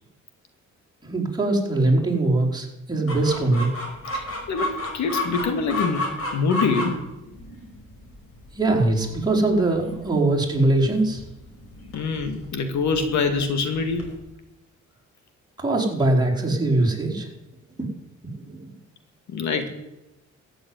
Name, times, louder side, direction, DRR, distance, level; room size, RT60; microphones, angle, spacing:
voice 1, 1.0-3.7 8.5-11.2 15.6-17.3 17.8-17.9 18.4-18.7, right 2 dB, 15° right, -3 dB, 4.6 m, -22 dB
Chicken rooster, 3.1-14.2, left 2 dB, 50° left, 5.5 m, -33 dB
voice 2, 4.1-6.1 6.3-7.0 11.9-14.1 19.3-19.7, left 4 dB, 70° left, 7 dB, 2.2 m, -25 dB
14.5 x 7.9 x 9.7 m, 0.94 s
cardioid pair, 90°, 30 cm